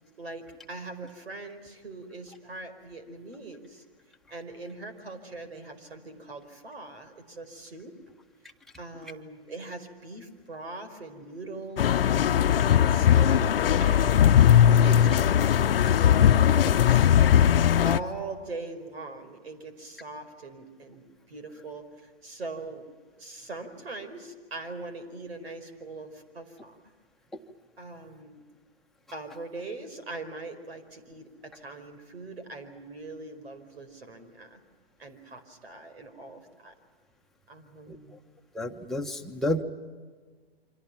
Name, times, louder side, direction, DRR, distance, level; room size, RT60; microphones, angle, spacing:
voice 1, 0.2-3.8 4.3-7.9 8.8-12.3 12.7-13.5 13.8-14.4 14.8-17.1 17.8-22.8 23.2-26.8 27.8-28.4 29.1-34.6 35.0-36.7 37.5-38.2, right 2 dB, 80° right, 10 dB, 4.9 m, -41 dB
sound 1, 11.8-18.0, left 9 dB, 65° left, 0.9 m, -19 dB
voice 2, 38.5-39.6, left 1 dB, ahead, 1 dB, 1.4 m, -30 dB
29.0 x 25.5 x 6.0 m, 1.5 s
hypercardioid pair, 130°, 31 cm